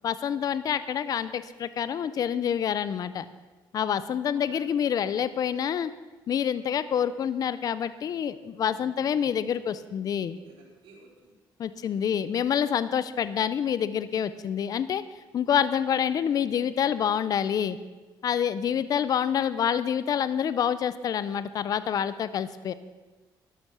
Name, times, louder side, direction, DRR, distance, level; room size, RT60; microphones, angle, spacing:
voice 1, 0.0-3.2 3.7-5.9 6.3-10.4 11.6-15.0 15.3-17.8 18.2-22.7, left 8 dB, 50° left, 14 dB, 0.6 m, -27 dB
voice 2, 10.3-11.4 11.8-12.2, right 3 dB, 85° right, 0 dB, 3.7 m, -55 dB
12.0 x 12.0 x 6.2 m, 1.2 s
cardioid pair, 125°, 8 cm